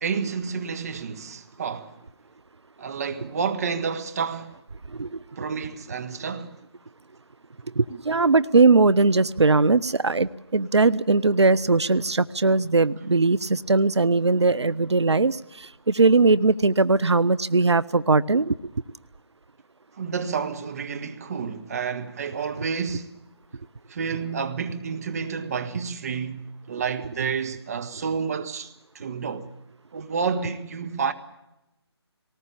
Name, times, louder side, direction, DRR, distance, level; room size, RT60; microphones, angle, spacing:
voice 1, 0.0-1.9 2.8-4.6 5.4-6.6 20.0-23.1 23.9-29.5 29.9-31.1, right 6 dB, 35° right, 1.4 m, -30 dB
voice 2, 7.8-18.6, right 3 dB, 85° right, 0.7 m, -20 dB
19.5 x 18.5 x 8.6 m
figure-of-eight pair, 155°, 14 cm